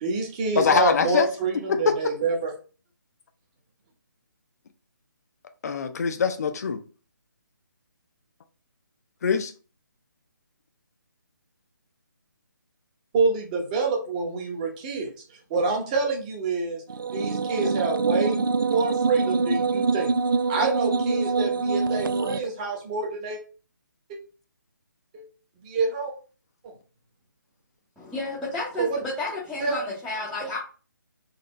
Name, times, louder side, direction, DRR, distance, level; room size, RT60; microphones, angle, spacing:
voice 1, 0.0-2.5 13.1-15.1 15.5-16.8 17.1-20.1 20.5-23.4 25.1-25.2 25.6-26.1 28.8-28.9 29.6-29.8 30.4-30.5, right 4 dB, 20° right, 1.0 m, -27 dB
voice 2, 0.6-1.3 1.7-1.9 5.6-6.8 9.2-9.5, left 6 dB, 50° left, 0.5 m, -23 dB
sound 1, 16.9-22.4, right 4 dB, 80° right, 0.4 m, -25 dB
voice 3, 28.0-30.6, left 2 dB, ahead, 0.7 m, -32 dB
4.2 x 2.8 x 3.8 m
figure-of-eight pair, 155°, 11 cm